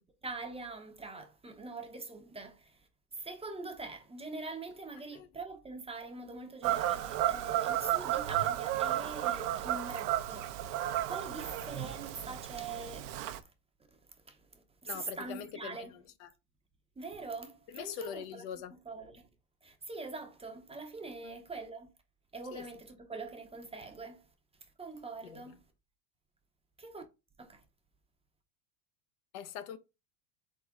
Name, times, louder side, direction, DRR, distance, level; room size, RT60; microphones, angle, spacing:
voice 1, 0.2-10.5 11.1-13.4 13.9-14.0 14.3-16.0 17.0-19.3 19.6-21.9 22.3-24.3 24.8-25.6 26.8-27.0 27.4-27.6, right 3 dB, 15° right, 0.7 m, -44 dB
Fowl / Bird vocalization bird call bird song, 6.6-13.4, right 13 dB, 70° right, 0.8 m, -33 dB
voice 2, 14.9-16.3 17.7-18.7 21.2-21.3 22.5-22.6 25.2-25.4 29.3-29.8, left 8 dB, 55° left, 0.7 m, -43 dB
3.8 x 3.8 x 3.6 m
supercardioid pair, 115°, 47 cm